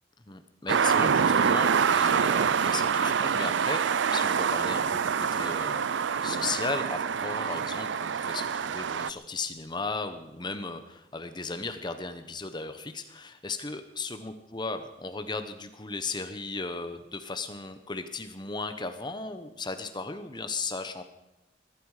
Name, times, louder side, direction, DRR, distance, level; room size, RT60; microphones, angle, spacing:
voice 1, 0.3-3.9 4.1-21.0, left 3 dB, 25° left, 9 dB, 0.9 m, -36 dB
sound 1, 0.7-9.1, right 6 dB, 70° right, 0.5 m, -26 dB
22.0 x 13.5 x 4.9 m, 0.93 s
head